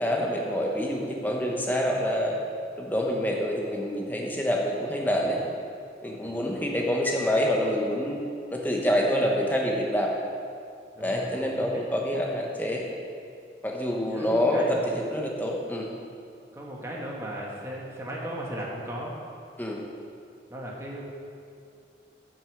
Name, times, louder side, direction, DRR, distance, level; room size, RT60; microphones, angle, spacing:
voice 1, 0.0-2.4 2.8-5.4 6.0-8.2 8.5-10.1 11.0-12.8 13.6-15.9 19.6-19.8, equal, 10° left, -1 dB, 1.1 m, -26 dB
voice 2, 5.0-5.4 6.2-6.9 10.9-12.0 14.1-14.9 16.5-19.2 20.5-21.0, equal, 15° right, -3 dB, 1.3 m, -37 dB
8.7 x 6.3 x 7.1 m, 2.4 s
head